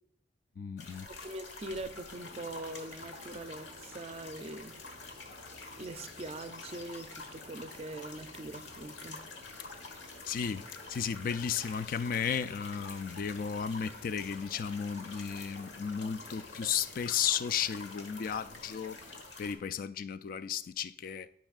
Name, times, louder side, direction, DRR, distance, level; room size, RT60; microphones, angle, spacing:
voice 1, 0.6-1.1 10.3-19.0 19.4-21.3, left 7 dB, 50° left, 0.3 m, -34 dB
sound 1, 0.8-19.5, left 3 dB, 90° left, 1.2 m, -48 dB
voice 2, 1.2-4.8 5.8-9.2, right 2 dB, 35° right, 0.5 m, -42 dB
sound 2, 2.1-19.2, left 1 dB, 70° left, 1.2 m, -55 dB
12.5 x 5.3 x 2.4 m
head